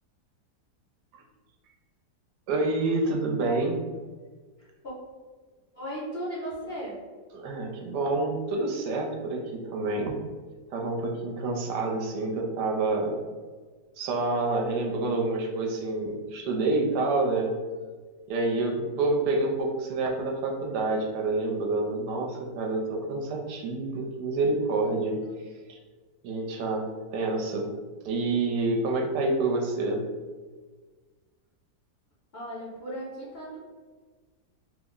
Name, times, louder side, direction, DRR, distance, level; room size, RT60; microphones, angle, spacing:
voice 1, 2.5-3.8 7.3-10.2 10.7-13.2 14.0-17.6 18.3-25.8 26.2-27.7 28.0-30.1, right 2 dB, 80° right, 1 dB, 1.1 m, -28 dB
voice 2, 4.6-4.9 5.7-7.0 32.3-33.6, equal, 50° left, -8 dB, 0.7 m, -36 dB
3.3 x 2.0 x 3.6 m, 1.4 s
omnidirectional pair, 1.8 m